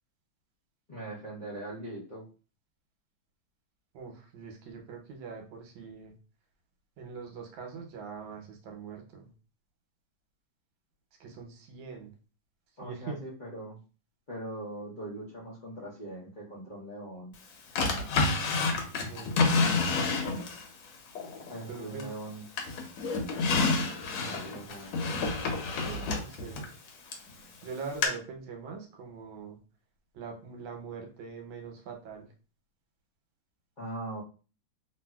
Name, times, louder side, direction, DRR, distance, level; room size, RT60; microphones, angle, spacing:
voice 1, 0.9-2.3 12.8-13.8 14.3-17.3 21.5-22.4 24.2-25.0 25.8-26.1 33.8-34.2, right 1 dB, 50° left, -8 dB, 0.5 m, -41 dB
voice 2, 3.9-6.1 7.0-9.3 11.2-12.1 12.8-13.2 19.1-20.1 21.7-22.1 24.3-24.6 26.1-26.7 27.6-29.6 30.1-32.3, right 5 dB, 80° right, 3 dB, 1.4 m, -43 dB
Drawer open or close, 17.8-20.7 21.2-22.2 22.6-27.3 28.0-28.1, left 3 dB, 85° left, 1.4 m, -29 dB
3.0 x 2.6 x 2.2 m, 0.34 s
omnidirectional pair, 2.1 m